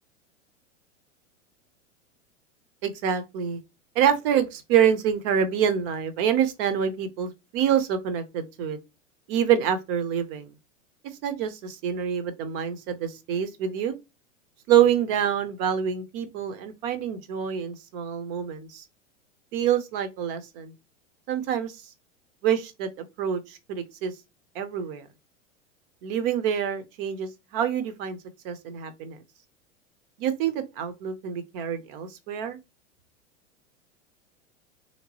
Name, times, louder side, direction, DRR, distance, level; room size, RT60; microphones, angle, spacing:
voice 1, 2.8-3.6 3.9-8.8 9.3-10.5 11.2-14.0 14.7-18.8 19.5-20.7 21.3-21.8 22.4-24.1 24.5-25.1 26.0-28.2 28.4-29.2 30.2-32.6, right 9 dB, 45° right, 0.9 m, -26 dB
3.6 x 3.0 x 2.8 m
hypercardioid pair, 100°, 38 cm